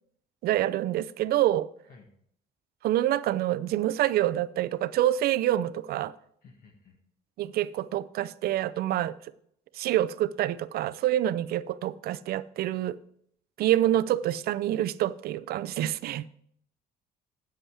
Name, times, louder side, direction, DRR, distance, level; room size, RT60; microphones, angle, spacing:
voice 1, 0.4-1.7 2.8-6.1 7.4-9.2 9.7-13.0 13.6-16.3, right 13 dB, 65° right, 0.5 m, -27 dB
voice 2, 6.4-7.0, left 4 dB, 60° left, 1.7 m, -54 dB
9.4 x 7.9 x 4.8 m
cardioid pair, 110°, 17 cm